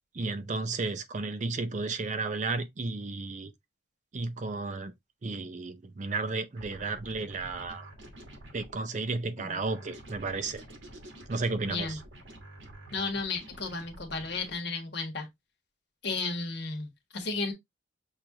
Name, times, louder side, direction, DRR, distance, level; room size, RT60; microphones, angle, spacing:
voice 1, 0.1-3.5 4.1-4.9 5.2-7.9 8.5-10.6 11.3-12.0, right 3 dB, 40° right, 0.5 m, -33 dB
sound 1, 6.5-8.8 9.6-14.6, right 1 dB, 85° right, 1.3 m, -48 dB
voice 2, 12.9-15.3 16.0-17.5, left 3 dB, 60° left, 1.2 m, -33 dB
6.3 x 2.4 x 2.8 m
head